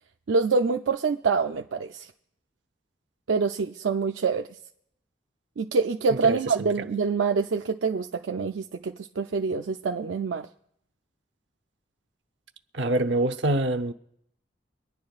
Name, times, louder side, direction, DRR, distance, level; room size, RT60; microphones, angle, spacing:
voice 1, 0.3-2.1 3.3-4.5 5.6-10.5, right 4 dB, 90° right, 0.5 m, -26 dB
voice 2, 6.2-6.7 12.7-13.9, right 1 dB, 75° right, 0.8 m, -25 dB
24.5 x 10.0 x 2.4 m
head